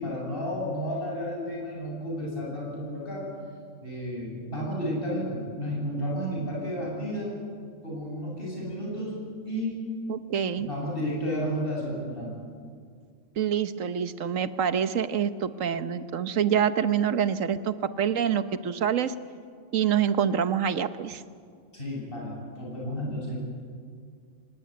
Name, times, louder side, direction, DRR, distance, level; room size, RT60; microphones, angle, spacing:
voice 1, 0.0-3.2 3.8-7.3 7.8-9.2 9.4-9.8 10.7-12.3 21.7-23.4, equal, 45° left, -3 dB, 8.4 m, -32 dB
voice 2, 10.1-10.7 13.4-19.1 19.7-21.2, right 8 dB, 80° right, 12 dB, 1.3 m, -26 dB
24.0 x 19.5 x 9.5 m, 2.1 s
omnidirectional pair, 1.3 m